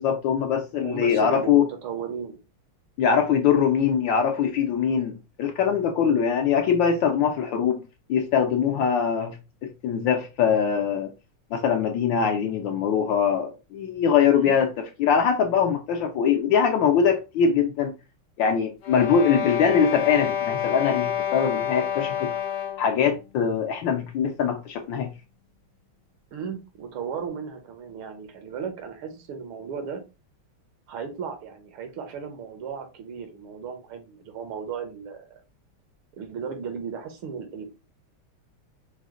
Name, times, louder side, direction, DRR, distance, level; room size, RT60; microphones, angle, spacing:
voice 1, 0.0-1.7 3.0-5.1 5.4-7.8 8.1-9.4 9.8-11.1 11.5-17.9 18.4-22.3 22.8-25.1, left 7 dB, 75° left, 1.2 m, -22 dB
voice 2, 0.7-2.4 14.3-14.6 19.2-19.5 26.3-30.0 30.9-35.4 36.1-37.7, right 6 dB, 75° right, 1.7 m, -35 dB
sound 1, 18.8-23.0, left 9 dB, 90° left, 0.5 m, -28 dB
4.9 x 2.1 x 3.6 m
omnidirectional pair, 2.4 m